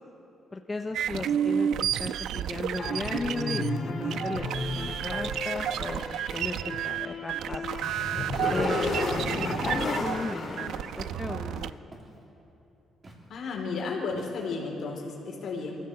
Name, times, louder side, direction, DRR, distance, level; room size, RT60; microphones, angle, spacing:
voice 1, 0.5-7.7 8.5-12.0, left 3 dB, 20° left, 5 dB, 0.8 m, -36 dB
sound 1, 0.9-11.7, right 10 dB, 75° right, 0.4 m, -31 dB
voice 2, 1.1-1.5 13.3-15.8, left 4 dB, 60° left, 1 dB, 3.6 m, -34 dB
sound 2, 2.8-11.5, left 3 dB, 45° left, 3.6 m, -33 dB
Walk footsteps, 9.6-9.9 10.5-10.9 11.9-12.2 13.0-13.3 14.1-14.6, right 1 dB, 35° right, 3.3 m, -50 dB
23.5 x 14.5 x 7.9 m, 2.9 s
cardioid pair, 110°, 0 cm